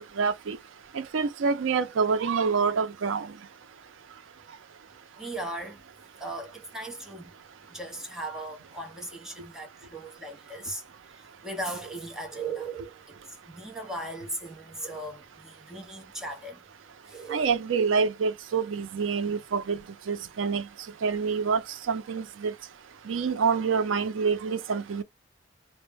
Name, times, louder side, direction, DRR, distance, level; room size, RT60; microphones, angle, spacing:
voice 1, 0.2-0.6 0.9-3.3 17.3-19.8 20.1-20.7 21.0-21.6 21.9-22.5 23.1-25.0, right 5 dB, 90° right, 0.4 m, -26 dB
voice 2, 5.2-5.8 6.2-7.3 7.7-10.9 11.1-16.6 17.1-17.5, right 2 dB, 5° right, 0.6 m, -38 dB
2.1 x 2.0 x 3.1 m
head